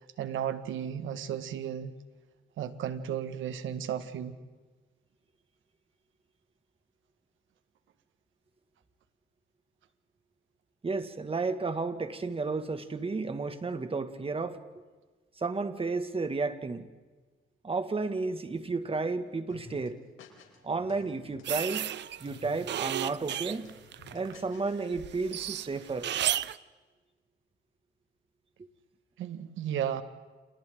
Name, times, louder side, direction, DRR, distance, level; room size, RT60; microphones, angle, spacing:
voice 1, 0.2-1.9 2.6-4.3 29.2-30.0, right 9 dB, 80° right, 10 dB, 1.9 m, -34 dB
voice 2, 10.8-14.6 15.4-16.9 17.6-20.0 20.6-21.9 22.2-23.7 24.1-26.1, right 3 dB, 30° right, 9 dB, 2.1 m, -32 dB
sound 1, 19.5-20.6 20.9-22.0 22.3-22.6 23.0-24.7, left 5 dB, 85° left, 4.4 m, -51 dB
sound 2, 21.5-24.4 24.7-26.6, right 11 dB, 65° right, 0.7 m, -33 dB
30.0 x 29.0 x 3.9 m, 1.3 s
cardioid pair, 90°, 20 cm